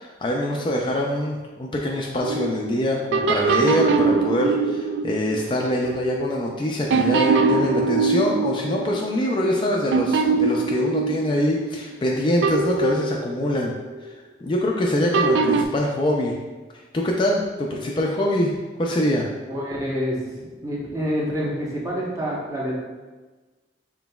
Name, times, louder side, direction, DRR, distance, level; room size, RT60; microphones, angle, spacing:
voice 1, 0.0-13.7 14.0-16.3 16.7-19.3, left 1 dB, 25° left, -1 dB, 0.4 m, -24 dB
sound 1, 2.2-6.5 6.9-9.6 9.9-12.0 12.4-14.0 15.1-15.6, right 4 dB, 80° right, 0.3 m, -23 dB
voice 2, 19.5-22.8, equal, 20° right, -5 dB, 0.9 m, -27 dB
6.0 x 3.9 x 2.3 m, 1.3 s
head